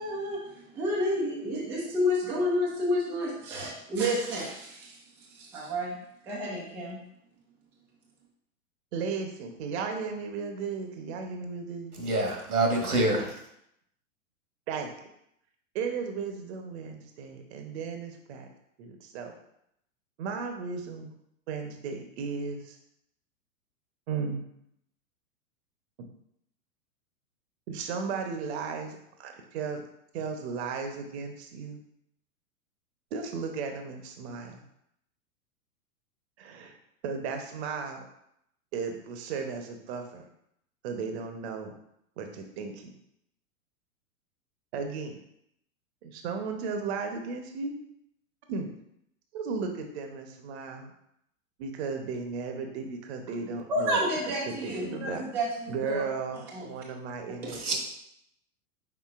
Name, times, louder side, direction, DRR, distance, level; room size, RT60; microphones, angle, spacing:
voice 1, 0.0-6.0 6.2-7.0 53.7-56.1 56.3-56.7, equal, 5° right, -4 dB, 0.3 m, -30 dB
voice 2, 8.9-11.9 13.1-13.2 14.7-14.9 15.7-18.5 18.8-19.3 20.2-21.1 21.5-22.8 24.1-24.4 27.7-29.8 30.1-31.8 33.1-34.6 36.4-36.7 37.0-38.0 38.7-40.2 40.8-41.7 42.2-42.9 44.7-45.1 46.0-47.7 48.5-48.7 49.3-50.9 51.6-54.0 54.6-55.2 55.7-57.8, right 5 dB, 45° right, 4 dB, 0.8 m, -35 dB
voice 3, 11.9-13.4 57.5-57.8, right 2 dB, 85° right, 1 dB, 1.5 m, -26 dB
5.8 x 3.8 x 2.4 m, 0.76 s
hypercardioid pair, 110°, 44 cm